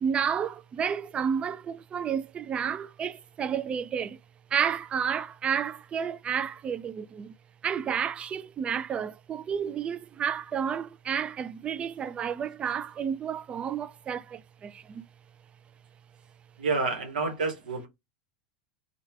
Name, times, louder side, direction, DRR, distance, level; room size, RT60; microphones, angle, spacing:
voice 1, 0.0-4.2 4.5-7.3 7.6-15.1, right 7 dB, 25° right, 0.3 m, -31 dB
voice 2, 16.6-17.9, right 4 dB, 75° right, 1.0 m, -29 dB
3.1 x 2.3 x 3.3 m
figure-of-eight pair, 90°, 4 cm